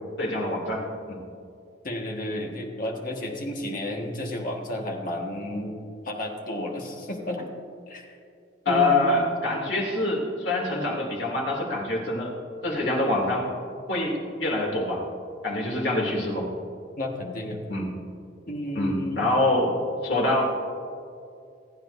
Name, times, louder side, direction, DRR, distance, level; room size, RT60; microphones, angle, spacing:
voice 1, 0.2-1.2 8.6-12.3 12.6-13.5 13.9-15.0 15.4-16.5 17.7-17.9 18.7-20.4, left 2 dB, 70° left, -2 dB, 2.8 m, -25 dB
voice 2, 1.8-5.7 6.0-7.5 7.9-8.2 8.6-9.3 17.0-17.6 18.5-19.3, left 1 dB, 45° left, 1 dB, 1.7 m, -32 dB
27.5 x 9.3 x 2.7 m, 2.4 s
head